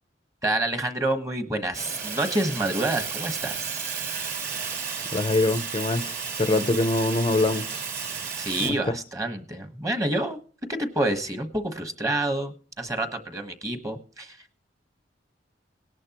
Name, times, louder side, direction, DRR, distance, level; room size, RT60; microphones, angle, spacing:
voice 1, 0.4-3.8 8.3-10.4 10.7-14.4, right 1 dB, 20° right, 1.2 m, -28 dB
Fire, 1.7-8.7, right 6 dB, 50° right, 3.2 m, -33 dB
voice 2, 5.1-7.8 8.6-8.9, left 2 dB, 30° left, 0.6 m, -24 dB
18.0 x 11.0 x 2.9 m
head